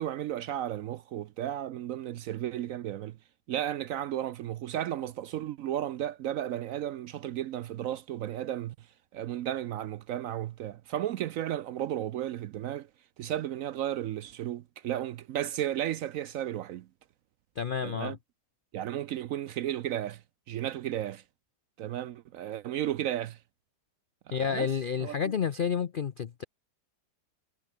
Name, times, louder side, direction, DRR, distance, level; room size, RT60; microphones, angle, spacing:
voice 1, 0.0-3.2 3.5-8.9 9.1-12.9 13.2-16.9 17.8-18.2 18.7-20.2 20.5-21.2 21.8-23.4 24.3-24.7 25.0-25.2, right 11 dB, 70° right, 0.8 m, -34 dB
voice 2, 17.6-18.2 24.3-26.4, left 7 dB, 65° left, 0.5 m, -30 dB
omnidirectional pair, 1.8 m